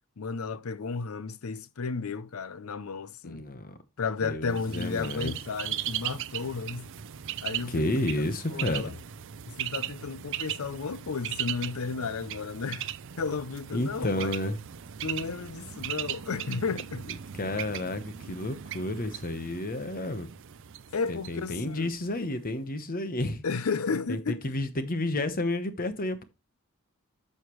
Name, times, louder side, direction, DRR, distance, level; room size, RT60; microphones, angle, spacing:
voice 1, 0.2-3.5 4.0-6.9 7.4-8.0 8.5-8.9 9.5-12.9 13.2-14.3 15.0-17.1 20.9-21.9 23.4-24.5, left 4 dB, 75° left, 0.6 m, -33 dB
voice 2, 3.2-3.8 4.2-5.3 7.7-9.0 13.7-14.6 17.3-20.3 21.1-23.4 24.1-24.2 24.4-26.2, left 1 dB, 40° left, 1.0 m, -31 dB
Bird, 4.5-22.3, right 11 dB, 60° right, 0.5 m, -38 dB
11.0 x 6.6 x 3.1 m
head